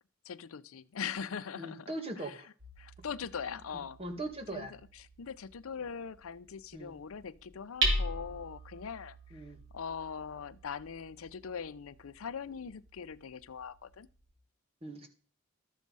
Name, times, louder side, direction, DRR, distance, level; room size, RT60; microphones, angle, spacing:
voice 1, 0.2-1.9 2.2-2.4 2.8-4.0 4.5-4.7 4.9-9.4 9.7-14.1, left 6 dB, 90° left, 0.5 m, -41 dB
voice 2, 1.6-2.5 3.4-3.6 4.0-4.7 6.7-6.9 9.3-9.6 14.8-15.1, right 2 dB, 30° right, 1.9 m, -40 dB
Hammer, 2.6-14.3, right 1 dB, 60° right, 3.4 m, -40 dB
13.0 x 7.3 x 5.4 m
head